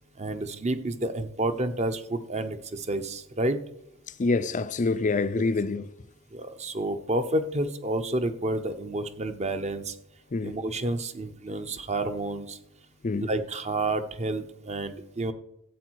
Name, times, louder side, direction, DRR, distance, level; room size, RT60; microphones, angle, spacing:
voice 1, 0.2-3.6 5.3-5.4 6.3-9.9 10.4-12.6 13.2-15.3, right 2 dB, 30° right, 0.8 m, -30 dB
voice 2, 4.2-5.9 10.3-10.6 13.0-13.3, left 3 dB, 35° left, 0.5 m, -26 dB
13.5 x 8.4 x 4.7 m
head